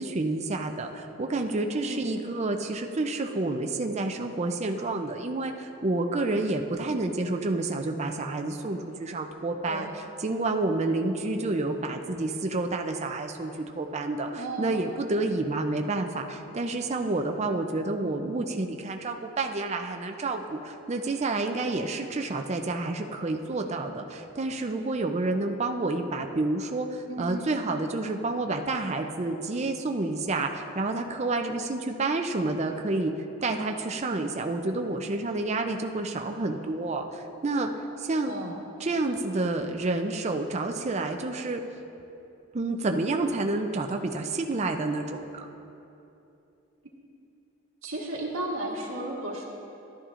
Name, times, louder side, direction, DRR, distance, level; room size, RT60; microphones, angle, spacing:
voice 1, 0.0-33.1 33.4-37.7 38.0-38.3 38.8-41.6 42.5-45.4, right 2 dB, 30° right, 4 dB, 0.4 m, -29 dB
voice 2, 14.3-14.9 27.1-27.5 38.3-38.7 47.8-49.5, right 1 dB, 80° right, -4 dB, 1.4 m, -34 dB
14.0 x 11.5 x 2.5 m, 2.8 s
head